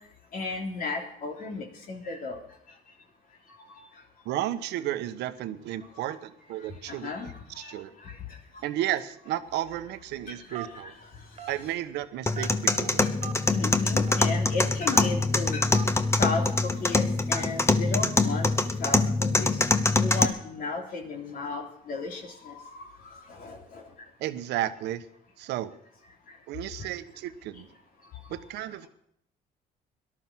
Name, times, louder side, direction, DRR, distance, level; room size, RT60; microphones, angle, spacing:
voice 1, 0.3-2.4 3.6-3.9 6.0-6.1 6.9-8.2 10.3-10.9 12.4-12.5 13.0-13.1 13.5-15.7 16.1-18.5 18.8-19.6 20.0-23.8 26.3-26.4 26.8-26.9 28.3-28.4, left 4 dB, 55° left, 1 dB, 3.3 m, -35 dB
voice 2, 4.2-7.1 7.6-7.9 8.6-10.9 11.5-13.0 24.2-25.0 25.4-25.7 26.5-27.7 28.3-28.9, right 13 dB, 85° right, 11 dB, 1.2 m, -33 dB
Telephone, 10.5-10.9 11.4-11.6 12.3-12.7 13.2-13.3 14.1-14.2 14.9-15.0 15.7-15.9 16.5-16.6 17.3-17.5 18.2-18.4, right 7 dB, 40° right, 1.8 m, -39 dB
sound 1, 12.3-20.2, left 3 dB, 15° left, 1.2 m, -24 dB
18.0 x 12.0 x 6.2 m, 0.72 s
cardioid pair, 110°, 17 cm